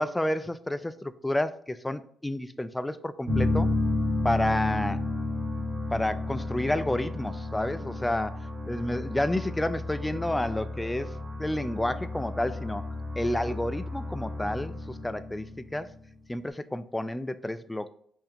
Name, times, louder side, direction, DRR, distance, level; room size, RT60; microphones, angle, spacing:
voice 1, 0.0-3.7 4.2-5.0 5.9-8.4 8.7-11.1 11.4-12.8 13.2-15.9 16.3-17.9, left 1 dB, 10° left, 0.4 m, -30 dB
sound 1, 3.3-15.9, left 2 dB, 40° right, 1.3 m, -32 dB
5.6 x 2.7 x 3.4 m
cardioid pair, 90°, 0 cm